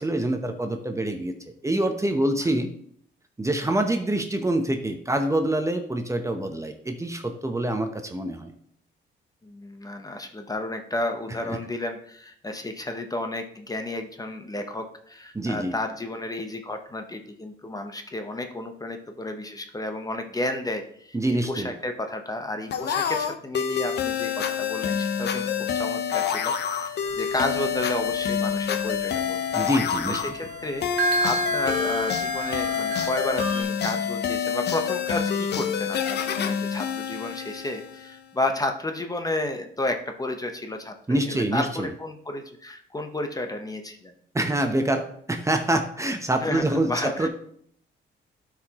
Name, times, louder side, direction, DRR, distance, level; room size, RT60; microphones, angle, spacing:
voice 1, 0.0-1.3 1.6-2.7 3.4-8.5 11.5-11.6 15.3-15.8 21.1-21.7 29.5-30.2 41.1-41.9 44.3-47.3, right 1 dB, 15° right, 5 dB, 0.7 m, -26 dB
voice 2, 9.4-21.2 21.5-29.7 30.1-44.1 46.4-47.3, left 2 dB, 20° left, 5 dB, 0.8 m, -32 dB
sound 1, 22.7-38.2, left 8 dB, 55° left, 0.7 m, -27 dB
sound 2, 27.0-33.6, right 3 dB, 65° right, 1.1 m, -32 dB
12.0 x 4.9 x 2.9 m, 0.65 s
cardioid pair, 90°, 20 cm